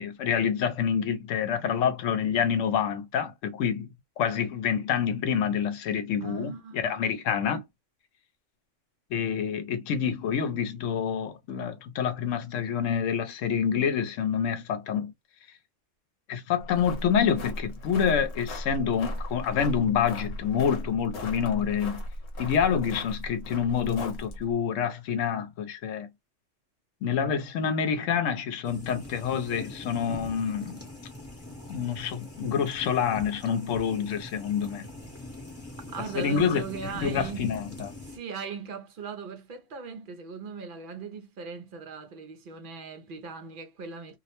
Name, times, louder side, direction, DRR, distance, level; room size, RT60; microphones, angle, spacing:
voice 1, 0.0-3.9 4.2-7.6 9.1-15.1 16.3-22.0 22.4-26.1 27.0-30.8 31.7-34.8 36.1-36.6 37.0-37.9, left 7 dB, 90° left, 1.0 m, -27 dB
voice 2, 6.2-6.9 35.9-37.5 38.0-44.2, right 5 dB, 60° right, 0.6 m, -39 dB
sound 1, 16.6-24.5, left 1 dB, 65° left, 1.0 m, -37 dB
sound 2, 28.6-38.2, left 2 dB, 15° left, 0.7 m, -42 dB
2.4 x 2.0 x 2.8 m
omnidirectional pair, 1.3 m